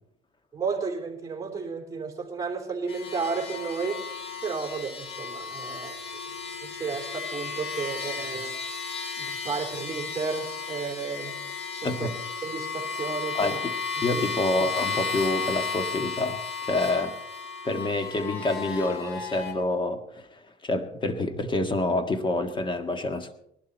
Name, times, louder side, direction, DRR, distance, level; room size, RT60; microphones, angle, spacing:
voice 1, 0.5-4.1 4.4-6.0 6.6-8.6 9.2-11.4 11.7-12.1 12.4-13.6 14.0-14.3, right 5 dB, 20° right, 2 dB, 3.3 m, -33 dB
sound 1, 2.9-19.5, left 5 dB, 70° left, 3.0 m, -34 dB
voice 2, 13.3-13.7 14.0-17.1 17.6-23.3, left 2 dB, 30° left, 8 dB, 1.7 m, -27 dB
19.5 x 12.0 x 4.5 m, 0.73 s
cardioid pair, 110°, 17 cm